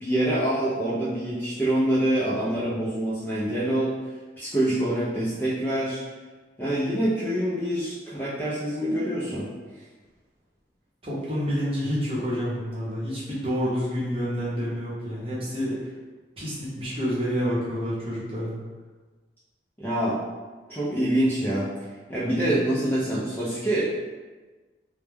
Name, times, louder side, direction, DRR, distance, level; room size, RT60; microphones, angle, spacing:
voice 1, 0.0-3.9 4.4-6.0 6.6-9.5 19.8-20.2 20.7-21.7 22.1-23.8, right 1 dB, 10° left, -9 dB, 0.3 m, -25 dB
voice 2, 11.0-15.9 16.4-18.5, equal, 30° right, -8 dB, 0.7 m, -28 dB
2.1 x 2.1 x 3.2 m, 1.3 s
head